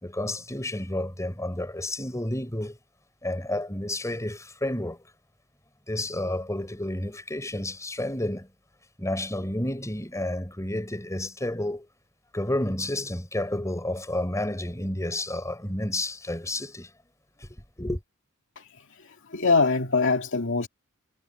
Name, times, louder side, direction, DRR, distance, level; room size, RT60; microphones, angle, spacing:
voice 1, 0.0-2.8 3.2-5.0 5.9-8.5 9.0-11.9 12.3-16.9 17.4-17.5 17.8-18.0, left 1 dB, 15° left, 4.4 m, -30 dB
voice 2, 18.6-20.7, left 4 dB, 65° left, 2.3 m, -24 dB
head